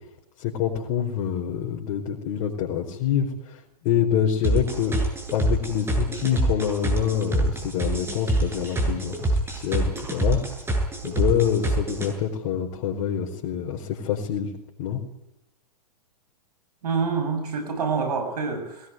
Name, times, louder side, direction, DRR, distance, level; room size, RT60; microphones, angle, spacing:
voice 1, 0.4-5.0 5.3-10.4 11.0-14.5 14.8-15.0, left 9 dB, 45° left, -1 dB, 4.8 m, -26 dB
sound 1, 4.4-12.1, right 2 dB, 10° right, 8.0 m, -25 dB
voice 2, 16.8-18.9, right 5 dB, 75° right, 7 dB, 7.5 m, -27 dB
23.0 x 19.0 x 9.5 m, 0.89 s
hypercardioid pair, 120°, 20 cm